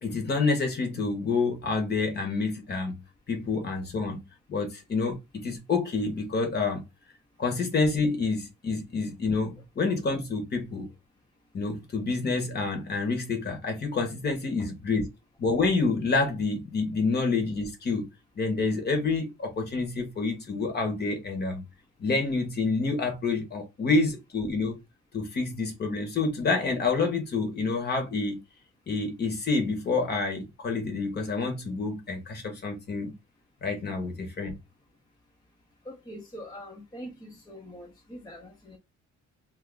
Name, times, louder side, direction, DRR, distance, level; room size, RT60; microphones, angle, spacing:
voice 1, 0.0-2.9 3.3-4.2 4.5-6.8 7.4-10.9 11.5-15.1 15.4-18.1 18.4-21.6 22.0-24.8 25.1-28.4 28.9-33.1 33.6-34.5, left 3 dB, 35° left, 1.0 m, -28 dB
voice 2, 35.8-38.8, equal, 15° left, 0.6 m, -43 dB
2.6 x 2.4 x 3.7 m
cardioid pair, 155°, 30 cm